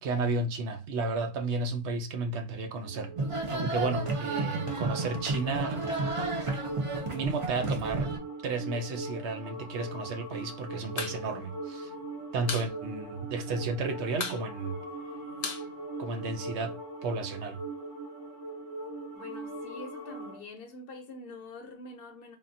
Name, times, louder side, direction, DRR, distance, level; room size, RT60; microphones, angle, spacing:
voice 1, 0.0-3.1 3.5-5.8 7.1-8.1 8.4-11.9 12.3-14.8 16.0-16.8 17.0-17.6, right 3 dB, 75° right, 0.8 m, -33 dB
sound 1, 2.8-20.4, right 2 dB, 25° right, 1.1 m, -41 dB
sound 2, 3.2-8.2, right 3 dB, 40° right, 0.4 m, -32 dB
sound 3, 11.0-11.2 11.5-11.6 11.9-12.7 13.0-13.1 13.4-13.8 14.1-16.5, left 5 dB, 80° left, 1.0 m, -36 dB
voice 2, 19.1-22.4, left 2 dB, 60° left, 0.8 m, -45 dB
3.5 x 2.2 x 2.5 m
omnidirectional pair, 1.2 m